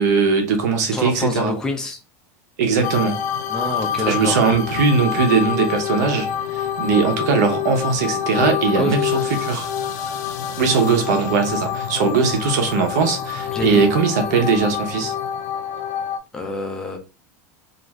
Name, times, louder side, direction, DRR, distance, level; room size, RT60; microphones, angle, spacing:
voice 1, 0.0-1.5 2.6-3.2 4.0-9.7 10.6-15.1, right 5 dB, 80° right, 0.8 m, -20 dB
voice 2, 0.9-2.0 3.5-4.4 8.6-9.0 13.5-13.9 16.3-17.0, left 2 dB, 5° left, 0.4 m, -27 dB
sound 1, 2.8-16.2, left 9 dB, 85° left, 0.5 m, -26 dB
2.5 x 2.4 x 3.0 m
supercardioid pair, 180°, 9 cm